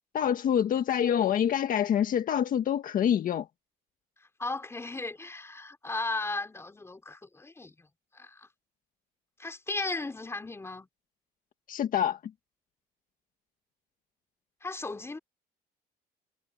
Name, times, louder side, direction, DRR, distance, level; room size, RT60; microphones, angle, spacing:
voice 1, 0.1-3.5 11.7-12.2, left 9 dB, 55° left, 1.7 m, -26 dB
voice 2, 4.4-7.9 8.1-8.5 9.4-10.9 14.6-15.2, left 3 dB, 15° left, 3.6 m, -36 dB
cardioid pair, 110°, 17 cm